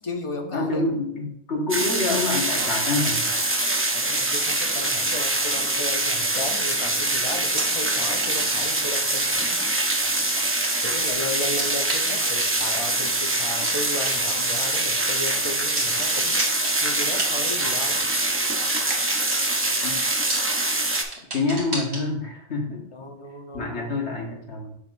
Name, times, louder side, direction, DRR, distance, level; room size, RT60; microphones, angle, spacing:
voice 1, 0.0-1.0 2.9-3.2 3.9-10.1 10.8-16.4 16.8-18.0 22.9-24.1, left 2 dB, 30° left, 4 dB, 0.8 m, -35 dB
voice 2, 0.5-3.3 19.8-20.0 21.3-22.9 23.5-24.7, left 3 dB, 85° left, -1 dB, 1.8 m, -27 dB
sound 1, 1.7-21.0, right 2 dB, 15° right, 0.4 m, -24 dB
sound 2, 4.6-4.9 5.4-5.6 6.0-7.2 7.6-8.8 9.2-11.2 11.6-11.7 11.9-12.0 12.4-12.9 13.2-13.3 13.6-13.7 14.1-14.2 14.4-15.3 15.8-19.4 19.6-20.0 20.3-20.4 20.6-20.7 21.0-22.0, right 2 dB, 75° right, 2.6 m, -31 dB
7.0 x 6.5 x 2.6 m, 0.70 s
omnidirectional pair, 1.1 m